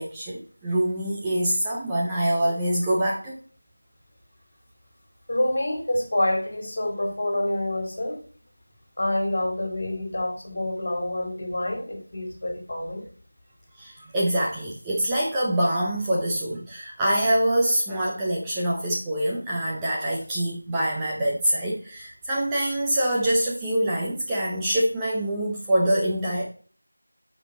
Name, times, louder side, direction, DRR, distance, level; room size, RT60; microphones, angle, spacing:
voice 1, 0.0-3.4 13.8-26.4, right 1 dB, 10° right, -5 dB, 0.6 m, -25 dB
voice 2, 5.3-8.2 9.0-13.1, left 1 dB, 45° left, 2 dB, 2.3 m, -27 dB
7.4 x 5.3 x 4.3 m, 0.42 s
figure-of-eight pair, 175°, 0 cm